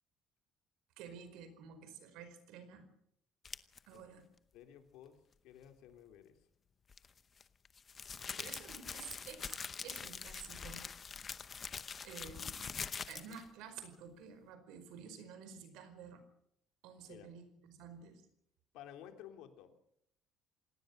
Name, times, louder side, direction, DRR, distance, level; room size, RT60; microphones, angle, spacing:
voice 1, 1.0-2.9 3.9-4.3 8.4-10.9 12.0-12.8 13.1-16.2 16.8-18.2, right 6 dB, 80° right, 10 dB, 4.9 m, -51 dB
sound 1, 3.5-3.8 6.9-13.5, left 6 dB, 25° left, 0.8 m, -44 dB
voice 2, 4.5-5.2 5.4-6.4 8.2-8.4 17.1-17.3 18.7-19.8, left 10 dB, 80° left, 6 dB, 3.1 m, -54 dB
26.5 x 18.5 x 6.5 m, 0.73 s
cardioid pair, 175°, 0 cm